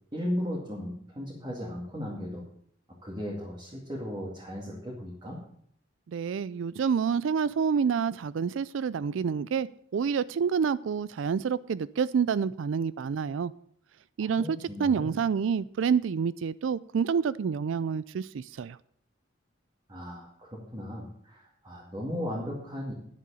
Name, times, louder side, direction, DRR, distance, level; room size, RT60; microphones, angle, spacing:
voice 1, 0.1-2.4 3.0-5.4 14.4-15.1 19.9-22.9, equal, 20° right, -4 dB, 2.4 m, -36 dB
voice 2, 6.1-13.5 14.2-18.8, right 6 dB, 75° right, 18 dB, 0.4 m, -28 dB
10.5 x 7.6 x 6.9 m, 0.66 s
head